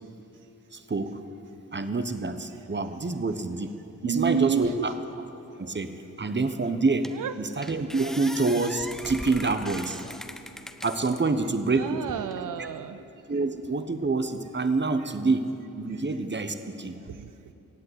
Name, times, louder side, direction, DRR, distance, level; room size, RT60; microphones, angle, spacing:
voice 1, 0.7-1.2 1.7-3.7 4.0-4.9 5.6-10.0 10.8-12.0 13.3-15.5 15.8-17.0, right 3 dB, 35° right, 9 dB, 1.0 m, -27 dB
voice 2, 4.0-4.9 7.1-7.3 11.7-13.0 17.1-17.3, right 9 dB, 80° right, 11 dB, 0.5 m, -30 dB
sound 1, 6.4-6.5 7.0-7.3 7.6-11.2 11.7-12.4, equal, ahead, 0.9 m, -40 dB
16.5 x 8.7 x 8.1 m, 2.9 s
cardioid pair, 50°, 32 cm